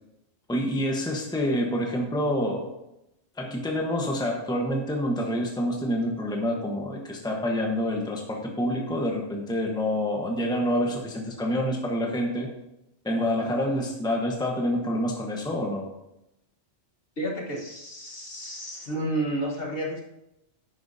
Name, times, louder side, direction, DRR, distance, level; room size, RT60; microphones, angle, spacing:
voice 1, 0.5-2.7 3.4-12.5 13.0-15.9, equal, 5° left, 1 dB, 1.1 m, -27 dB
voice 2, 17.2-20.0, right 1 dB, 55° left, 0 dB, 1.6 m, -31 dB
11.5 x 9.0 x 2.8 m, 0.87 s
omnidirectional pair, 1.2 m